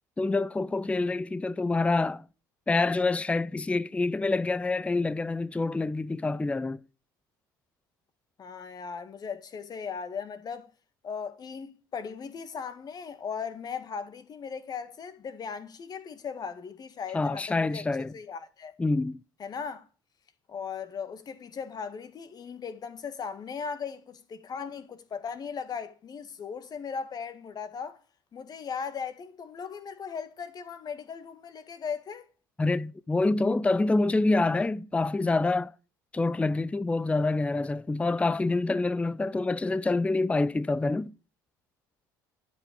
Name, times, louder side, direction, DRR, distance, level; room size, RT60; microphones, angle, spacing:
voice 1, 0.2-2.2 2.7-6.8 17.1-18.1 18.8-19.2 32.6-35.7 36.1-41.1, left 3 dB, 10° left, 0.5 m, -26 dB
voice 2, 8.4-10.7 11.0-17.9 18.1-18.7 19.4-19.9 20.5-28.0 28.3-32.3, left 6 dB, 40° left, 1.8 m, -38 dB
12.5 x 5.8 x 8.6 m
hypercardioid pair, 65°, 10 cm